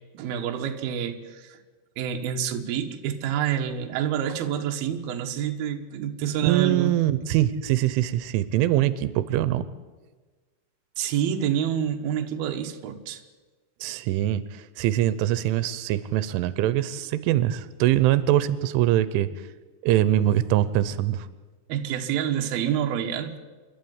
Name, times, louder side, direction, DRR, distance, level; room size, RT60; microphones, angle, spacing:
voice 1, 0.1-1.6 2.0-6.9 11.0-13.2 21.7-23.4, right 9 dB, 65° right, 4 dB, 3.0 m, -28 dB
voice 2, 6.4-9.6 13.8-14.4 14.8-19.3 19.8-21.3, right 13 dB, 90° right, 15 dB, 3.3 m, -23 dB
28.0 x 12.5 x 9.5 m, 1.3 s
omnidirectional pair, 5.5 m